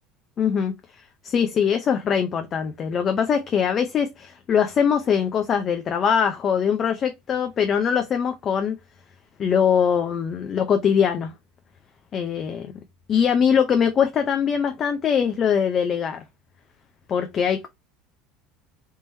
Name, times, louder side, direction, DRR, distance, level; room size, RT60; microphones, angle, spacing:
voice 1, 0.4-0.7 1.2-8.8 9.4-11.3 12.1-12.7 13.1-16.2 17.1-17.7, left 7 dB, 40° left, 0.6 m, -22 dB
3.6 x 3.0 x 2.7 m
supercardioid pair, 100°, 0 cm